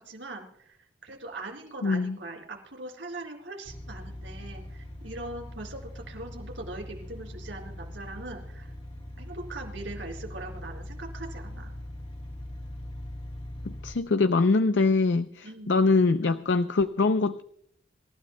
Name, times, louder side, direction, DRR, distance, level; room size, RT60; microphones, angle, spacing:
voice 1, 0.0-8.7 9.2-11.7 15.4-15.8, right 2 dB, 80° right, 4.3 m, -41 dB
voice 2, 1.8-2.2 13.6-17.4, left 3 dB, 75° left, 0.5 m, -23 dB
sound 1, 3.6-13.9, left 1 dB, 35° left, 2.2 m, -41 dB
27.0 x 15.0 x 2.2 m
head